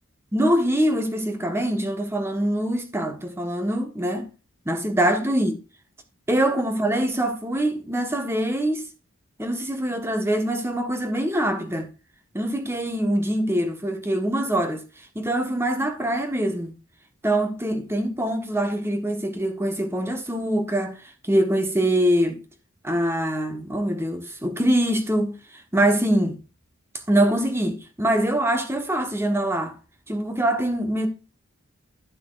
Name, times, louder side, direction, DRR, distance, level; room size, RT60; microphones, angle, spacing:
voice 1, 0.3-4.3 4.6-5.6 6.3-8.9 9.4-11.9 12.3-14.8 15.1-16.7 17.2-21.0 21.3-22.4 22.8-25.4 25.7-26.4 27.1-29.7 30.1-31.1, right 1 dB, 10° right, 1.3 m, -24 dB
12.0 x 7.1 x 2.5 m
head